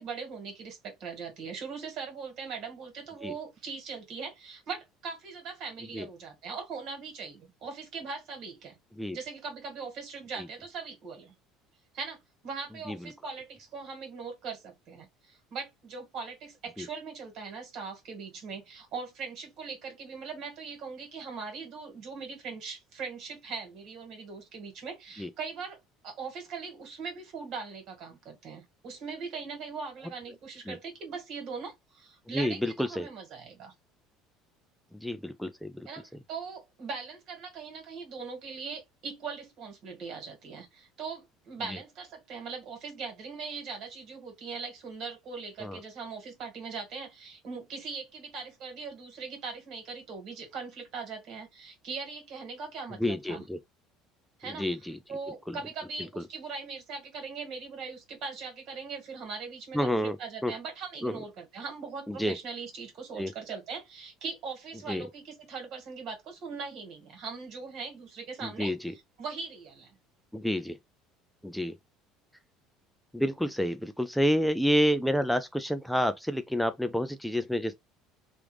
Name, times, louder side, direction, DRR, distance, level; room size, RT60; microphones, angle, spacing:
voice 1, 0.0-8.7 9.1-11.3 11.9-25.8 26.0-33.7 35.8-53.4 54.4-70.0, right 5 dB, 60° right, 1.7 m, -40 dB
voice 2, 32.3-33.1 35.0-35.9 45.6-45.8 53.0-53.6 54.6-54.9 55.5-55.6 59.7-60.2 60.4-60.5 61.0-61.1 62.1-62.3 63.2-63.3 64.9-65.1 68.4-68.8 70.3-70.8 71.4-71.7 73.1-77.7, equal, ahead, 0.3 m, -29 dB
3.3 x 2.5 x 3.1 m
supercardioid pair, 110°, 0 cm